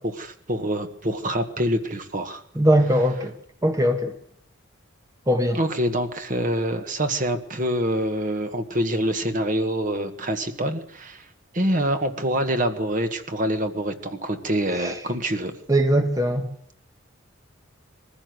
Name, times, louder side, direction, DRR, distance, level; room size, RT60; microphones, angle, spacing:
voice 1, 0.0-2.4 5.5-11.3 11.5-15.6, right 1 dB, 40° right, 7 dB, 1.7 m, -26 dB
voice 2, 2.5-3.3 3.6-4.1 5.3-5.6 14.8-15.0 15.7-16.5, equal, 15° right, 5 dB, 1.5 m, -20 dB
22.0 x 15.5 x 8.0 m, 0.65 s
head